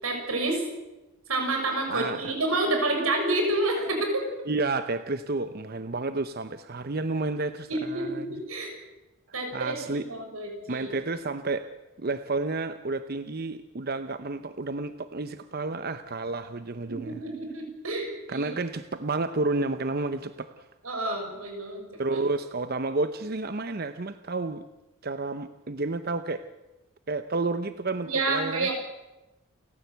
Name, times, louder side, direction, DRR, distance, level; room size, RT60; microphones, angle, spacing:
voice 1, 0.0-0.6 1.3-4.3 7.7-8.7 9.3-10.9 16.9-18.5 20.8-22.2 28.1-28.8, right 2 dB, 85° right, 3 dB, 6.6 m, -29 dB
voice 2, 1.9-2.3 4.5-8.4 9.5-10.1 10.7-11.7 12.0-17.2 18.3-20.7 22.0-24.7 25.0-26.5 27.1-28.7, right 3 dB, 45° right, 11 dB, 0.8 m, -31 dB
29.5 x 14.5 x 8.2 m, 1.0 s
head